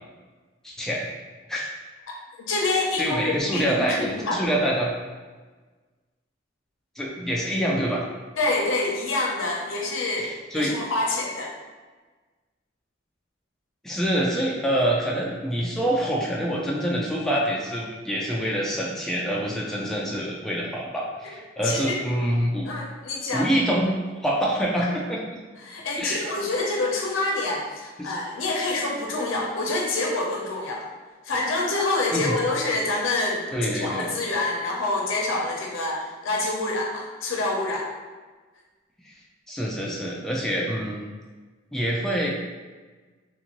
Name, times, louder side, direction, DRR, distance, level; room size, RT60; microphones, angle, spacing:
voice 1, 0.6-1.1 1.5-1.7 3.0-4.9 7.0-8.0 10.2-10.7 13.8-22.7 23.3-25.4 26.0-26.2 28.0-28.1 32.1-32.3 33.5-34.1 39.5-41.0 41.7-42.3, equal, ahead, -4 dB, 0.3 m, -26 dB
voice 2, 2.1-4.4 8.4-11.5 21.6-22.0 22.7-23.5 25.6-30.8 31.2-37.9, left 2 dB, 85° left, -1 dB, 0.6 m, -27 dB
2.6 x 2.5 x 2.9 m, 1.3 s
head